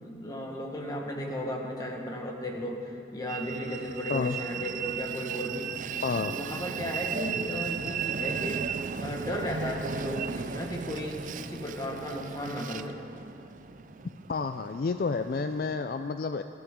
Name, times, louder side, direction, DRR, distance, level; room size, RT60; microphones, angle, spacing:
voice 1, 0.0-5.7 6.3-8.7 9.0-13.0, equal, 20° left, 1 dB, 1.5 m, -35 dB
Train, 3.3-15.7, right 7 dB, 45° right, 0.4 m, -36 dB
voice 2, 6.0-6.3 14.3-16.4, left 4 dB, 50° left, 9 dB, 0.3 m, -30 dB
21.5 x 14.0 x 3.7 m, 2.6 s
head